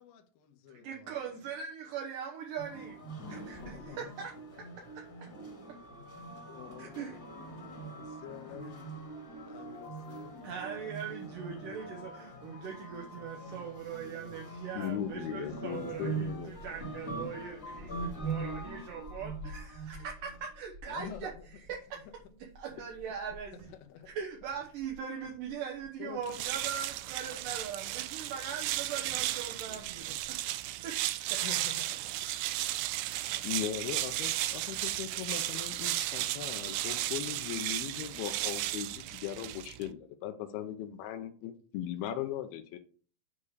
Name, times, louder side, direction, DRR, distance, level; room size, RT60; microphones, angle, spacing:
voice 1, 0.0-1.2 3.6-4.1 6.4-7.4 7.8-8.9 9.5-12.0 13.8-14.4 20.9-21.6 22.1-22.2 23.6-24.1 26.0-26.2 29.7-29.8 30.1-30.2 31.4-32.3, left 9 dB, 75° left, 2.5 m, -49 dB
voice 2, 0.8-3.0 3.3-4.3 5.0-5.1 6.8-7.2 10.4-21.3 21.7-22.1 22.6-23.7 24.2-30.4 30.8-31.0 31.3-31.6, right 7 dB, 70° right, 2.3 m, -41 dB
sound 1, 2.6-20.4, right 3 dB, 30° left, 2.1 m, -43 dB
voice 3, 14.7-16.6 33.4-42.8, left 11 dB, 90° left, 2.6 m, -38 dB
sound 2, 14.8-27.9 28.6-28.8 29.0-29.3 29.7-30.3, left 1 dB, 50° right, 1.0 m, -52 dB
sound 3, 26.2-39.9, right 15 dB, 85° right, 1.9 m, -34 dB
8.5 x 4.7 x 4.8 m
omnidirectional pair, 4.5 m